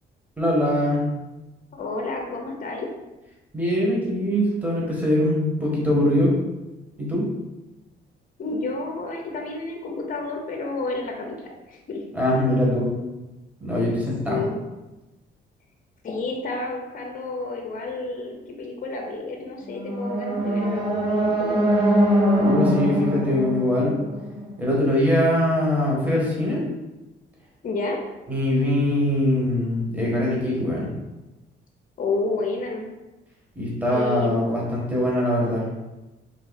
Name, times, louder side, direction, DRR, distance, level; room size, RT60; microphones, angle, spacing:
voice 1, 0.4-1.0 3.5-6.3 7.0-7.2 12.1-12.9 13.6-14.4 22.4-24.0 24.6-26.6 28.3-30.9 33.5-35.6, left 1 dB, 10° right, -5 dB, 1.5 m, -22 dB
voice 2, 1.7-2.9 8.4-11.4 11.7-12.0 14.3-14.6 16.0-21.6 27.6-28.0 32.0-32.9 33.9-34.3, left 3 dB, 45° left, 1 dB, 0.8 m, -30 dB
sound 1, 19.7-24.8, equal, 30° right, 1.5 m, -22 dB
3.8 x 2.7 x 4.1 m, 1.0 s
cardioid pair, 90°, 20 cm